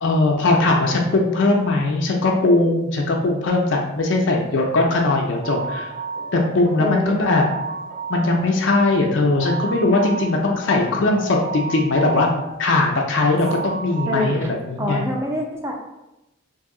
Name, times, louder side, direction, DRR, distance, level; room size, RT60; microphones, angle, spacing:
voice 1, 0.0-5.9 6.3-7.5 8.1-12.3 12.6-15.0, left 2 dB, 60° left, 0 dB, 0.4 m, -19 dB
sound 1, 5.4-14.4, right 3 dB, 40° right, 0.8 m, -33 dB
voice 2, 6.8-7.4 14.1-14.5 14.8-15.7, equal, 10° right, 0 dB, 0.5 m, -25 dB
3.0 x 2.7 x 3.7 m, 0.93 s
head